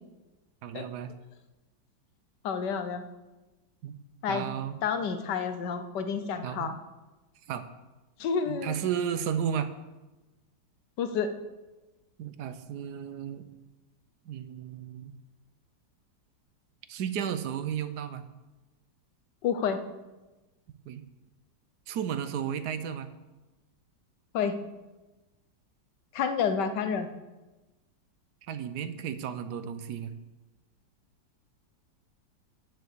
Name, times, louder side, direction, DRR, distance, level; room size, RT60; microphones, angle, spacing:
voice 1, 0.6-1.1 3.8-4.0 4.3-4.8 6.4-6.8 7.5-7.6 8.5-9.7 12.2-13.5 14.3-15.1 16.9-18.2 20.9-21.0 21.9-23.1 28.5-30.1, right 8 dB, 65° right, 11 dB, 1.2 m, -33 dB
voice 2, 2.4-3.0 4.2-4.5 4.8-6.8 8.2-8.8 11.0-11.3 19.4-19.8 24.3-24.6 26.1-27.1, left 6 dB, 70° left, 9 dB, 1.5 m, -29 dB
9.6 x 7.9 x 6.7 m, 1.1 s
omnidirectional pair, 2.0 m